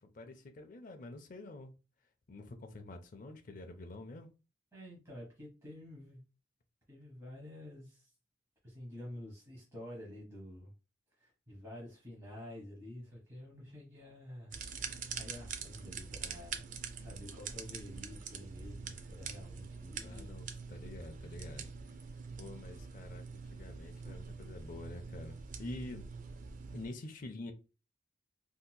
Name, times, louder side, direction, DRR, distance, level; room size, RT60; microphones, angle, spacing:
voice 1, 0.0-1.7 2.3-4.3 20.0-21.7 22.4-25.3 25.6-26.0 26.7-27.5, left 2 dB, 40° left, 0.4 m, -47 dB
voice 2, 4.7-6.2 6.9-8.1 8.6-10.7 11.2-14.5 14.8-16.6 17.0-20.3, left 1 dB, 15° right, 1.0 m, -49 dB
sound 1, 14.5-26.9, right 5 dB, 40° right, 0.3 m, -45 dB
3.8 x 2.8 x 2.2 m
head